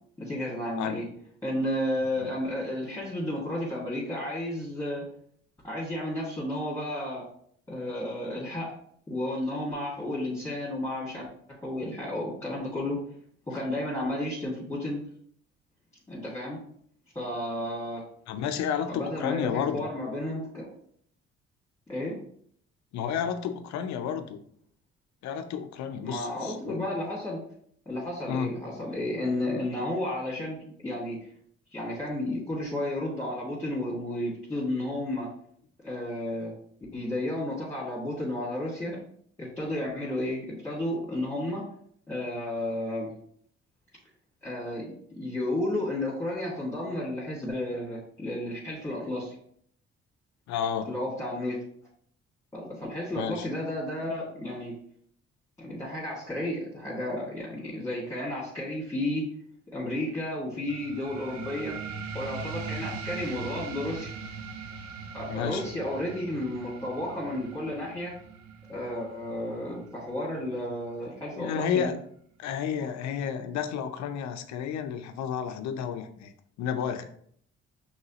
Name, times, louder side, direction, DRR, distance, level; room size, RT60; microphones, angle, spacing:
voice 1, 0.2-1.0 1.4-5.0 5.6-7.2 7.7-8.7 9.1-11.3 11.6-13.0 13.5-15.0 16.1-16.6 17.1-18.0 18.9-20.7 21.9-22.2 26.0-27.4 27.9-31.2 31.7-35.3 35.8-36.5 36.9-39.0 39.4-41.6 42.1-43.1 44.4-49.3 50.9-51.6 52.5-54.7 55.6-59.3 59.7-61.8 62.1-64.1 65.1-68.1 68.7-71.9, left 1 dB, 10° left, -7 dB, 2.1 m, -32 dB
voice 2, 18.3-19.9 22.9-24.4 25.2-26.9 28.3-28.5 50.5-50.9 53.2-53.5 65.3-65.6 71.4-71.9 72.4-76.3 76.6-77.1, left 8 dB, 70° left, 8 dB, 0.6 m, -31 dB
sound 1, 60.7-71.7, right 5 dB, 65° right, 0.7 m, -41 dB
5.4 x 3.3 x 3.0 m, 0.64 s
hypercardioid pair, 55°, 30 cm